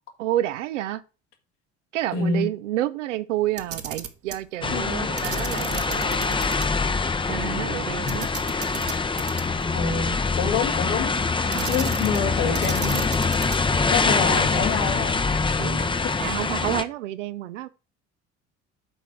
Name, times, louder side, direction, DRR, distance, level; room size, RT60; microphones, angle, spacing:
voice 1, 0.2-1.0 1.9-6.4 7.3-8.3 11.5-11.9 15.6-15.9 16.2-17.7, right 14 dB, 75° right, 0.7 m, -29 dB
voice 2, 2.1-2.5 4.7-5.1 9.7-11.2 11.7-13.0 13.9-15.2 15.5-15.6 16.2-16.3, left 5 dB, 75° left, 2.1 m, -27 dB
Camera, 3.5-4.4 5.2-6.7 7.0-7.1 8.1-9.7 11.5-12.3 12.5-13.7, right 8 dB, 40° right, 1.2 m, -35 dB
sound 1, 4.6-16.8, left 4 dB, 15° left, 0.7 m, -24 dB
8.0 x 4.5 x 5.9 m
hypercardioid pair, 60°, 37 cm